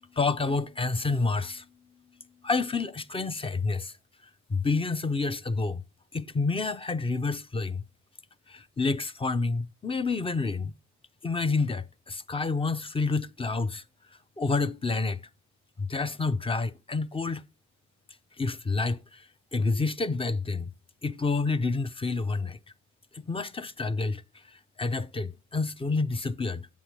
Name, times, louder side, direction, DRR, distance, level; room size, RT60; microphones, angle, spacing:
voice 1, 0.1-1.7 2.4-3.9 4.5-5.8 6.1-7.8 8.5-10.7 11.2-13.8 14.4-15.2 15.8-17.4 18.4-19.3 19.5-20.7 21.0-22.6 23.1-24.2 24.5-26.7, left 3 dB, 20° left, 0.6 m, -29 dB
9.8 x 8.1 x 3.1 m
cardioid pair, 90°, 30 cm